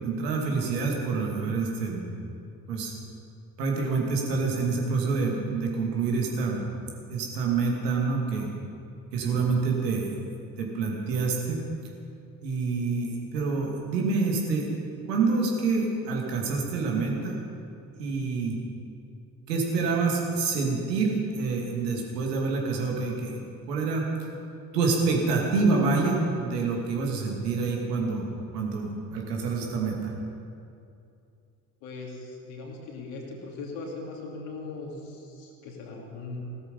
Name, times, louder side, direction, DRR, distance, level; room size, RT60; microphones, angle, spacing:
voice 1, 0.0-2.1 2.7-2.9 3.6-6.6 7.1-8.5 9.1-10.1 10.6-11.6 12.4-14.7 15.1-17.4 18.0-18.6 19.5-23.4 23.7-24.1 24.7-28.3 28.5-30.1, right 4 dB, 70° right, 0 dB, 2.6 m, -27 dB
voice 2, 31.8-36.4, left 3 dB, 60° left, 0 dB, 3.0 m, -39 dB
16.5 x 13.0 x 5.5 m, 2.6 s
figure-of-eight pair, 55°, 50 cm